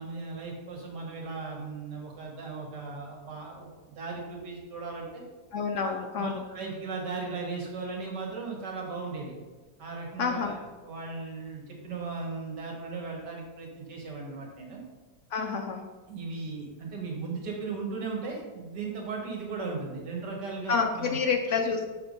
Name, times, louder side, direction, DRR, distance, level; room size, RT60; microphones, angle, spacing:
voice 1, 0.0-5.2 5.7-5.9 6.2-9.3 9.8-14.8 16.1-21.2, right 4 dB, 80° right, -1 dB, 2.0 m, -37 dB
voice 2, 5.5-6.4 10.2-10.6 15.3-15.8 20.7-21.8, left 5 dB, 70° left, 4 dB, 0.7 m, -28 dB
7.0 x 3.4 x 5.2 m, 1.3 s
omnidirectional pair, 1.8 m